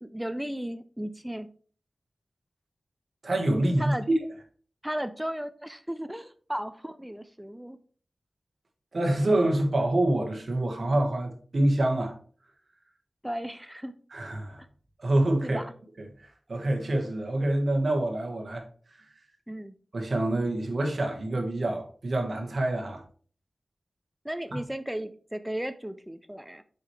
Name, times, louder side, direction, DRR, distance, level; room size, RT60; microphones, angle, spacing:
voice 1, 0.0-1.5 3.8-4.1 4.8-7.8 13.2-13.9 14.6-14.7 15.4-15.7 19.5-19.7 24.2-26.6, equal, 5° right, 0.4 m, -35 dB
voice 2, 3.2-3.9 8.9-12.1 14.1-14.6 15.0-15.6 16.5-18.6 19.9-23.0 24.5-24.6, right 1 dB, 60° right, 1.4 m, -26 dB
7.1 x 4.7 x 3.3 m
wide cardioid pair, 85°, 0 cm